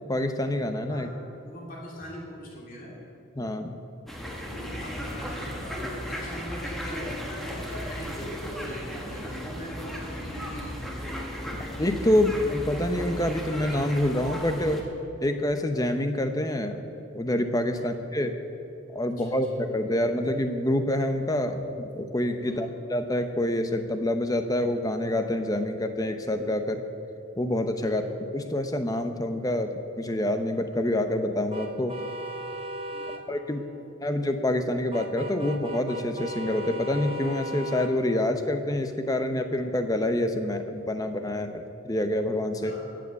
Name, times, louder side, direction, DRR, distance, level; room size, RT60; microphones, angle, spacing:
voice 1, 0.1-1.1 3.3-3.8 11.8-14.8 15.2-16.8 17.1-18.3 18.9-26.8 27.4-28.0 28.3-31.9 33.3-33.7 34.0-42.7, left 1 dB, 15° left, 7 dB, 0.7 m, -27 dB
voice 2, 1.4-2.9 4.5-11.2 17.7-18.0 19.2-19.4 22.4-22.7 27.8-28.1 32.9-34.1 42.6-42.9, equal, 40° left, -4 dB, 2.9 m, -42 dB
sound 1, 4.1-14.8, equal, ahead, 1.5 m, -35 dB
sound 2, 31.5-33.2 34.9-37.9, equal, 25° right, 0.9 m, -36 dB
15.0 x 7.7 x 8.2 m, 2.9 s
head